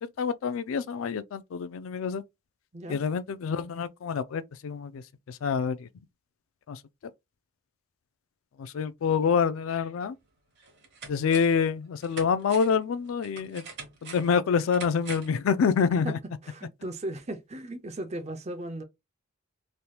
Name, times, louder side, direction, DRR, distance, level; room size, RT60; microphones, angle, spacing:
voice 1, 0.0-2.2 2.9-5.9 6.7-6.8 8.6-10.2 11.1-13.6 14.0-16.2, left 6 dB, 75° left, 0.3 m, -27 dB
sound 1, 10.0-10.1 10.6-11.7 12.0-15.4 15.7-15.8, right 5 dB, 55° right, 1.1 m, -44 dB
voice 2, 16.4-18.8, right 1 dB, 35° right, 0.6 m, -36 dB
3.3 x 2.9 x 2.2 m
head